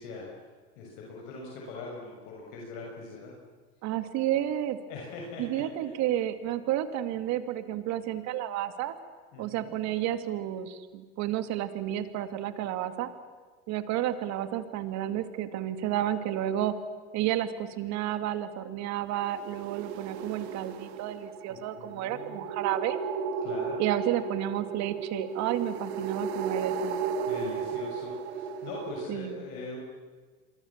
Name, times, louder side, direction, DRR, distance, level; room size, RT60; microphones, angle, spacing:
voice 1, 0.0-3.3 4.9-6.0 9.3-9.7 21.5-22.5 23.4-23.8 27.2-29.8, left 3 dB, 70° left, -2 dB, 6.6 m, -42 dB
voice 2, 3.8-4.8 5.4-8.9 9.4-13.1 13.7-16.8 17.1-23.0 23.8-27.0 29.1-29.5, right 12 dB, 55° right, 10 dB, 2.4 m, -31 dB
sound 1, 19.1-29.0, right 6 dB, 75° right, 2.4 m, -34 dB
27.5 x 23.5 x 7.3 m, 1.5 s
supercardioid pair, 100°, 32 cm